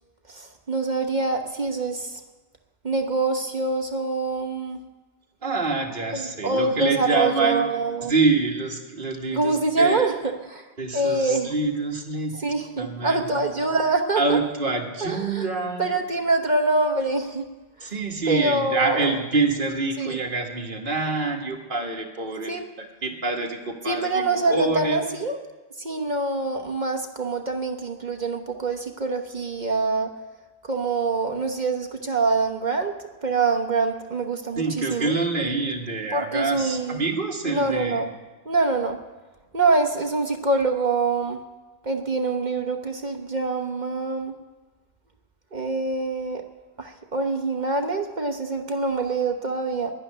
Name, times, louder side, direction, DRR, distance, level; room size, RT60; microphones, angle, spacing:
voice 1, 0.3-2.2 2.8-4.8 6.1-8.1 9.3-10.7 10.9-11.5 12.3-14.4 15.0-15.4 15.8-17.5 17.8-17.9 18.3-19.1 20.0-20.2 22.5-22.6 23.9-25.4 25.8-30.1 30.6-32.9 33.2-35.1 36.1-37.0 37.5-38.1 38.4-39.0 39.5-41.4 41.8-44.3 45.5-46.4 46.8-49.9, right 3 dB, 45° right, 4 dB, 0.5 m, -25 dB
voice 2, 5.4-7.7 8.0-10.1 10.8-12.4 12.8-13.5 14.2-15.9 17.8-25.0 34.6-38.1, right 3 dB, 25° right, 0 dB, 1.8 m, -26 dB
12.0 x 11.5 x 10.0 m, 1.2 s
omnidirectional pair, 2.3 m